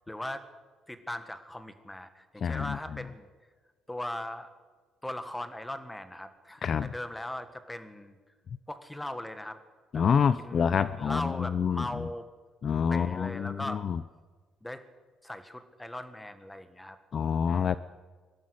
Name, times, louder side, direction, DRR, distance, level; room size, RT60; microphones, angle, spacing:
voice 1, 0.1-0.4 0.9-3.3 3.9-4.5 5.0-8.2 8.7-9.6 9.9-10.0 10.4-12.3 12.9-13.8 14.6-14.8 15.2-17.0 17.4-17.8, left 1 dB, 5° left, 10 dB, 1.6 m, -39 dB
voice 2, 2.4-2.8 6.6-6.9 9.9-11.8 12.6-14.0 17.1-17.8, left 7 dB, 40° left, 15 dB, 0.5 m, -27 dB
22.5 x 12.5 x 9.9 m, 1.4 s
cardioid pair, 140°, 0 cm